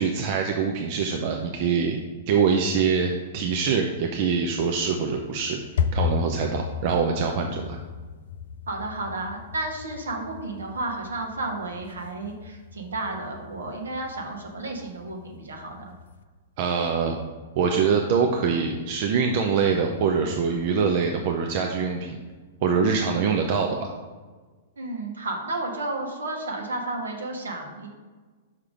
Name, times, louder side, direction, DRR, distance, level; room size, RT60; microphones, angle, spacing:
voice 1, 0.0-2.0 2.3-5.6 5.9-7.8 16.6-17.2 17.6-22.2 22.6-23.9, right 6 dB, 45° right, 3 dB, 0.6 m, -24 dB
sound 1, 4.9-16.2, left 7 dB, 60° left, 0.4 m, -35 dB
voice 2, 8.7-15.9 24.8-27.9, right 2 dB, 75° right, 2 dB, 1.3 m, -32 dB
5.8 x 4.9 x 4.9 m, 1.4 s
figure-of-eight pair, 105°, 0 cm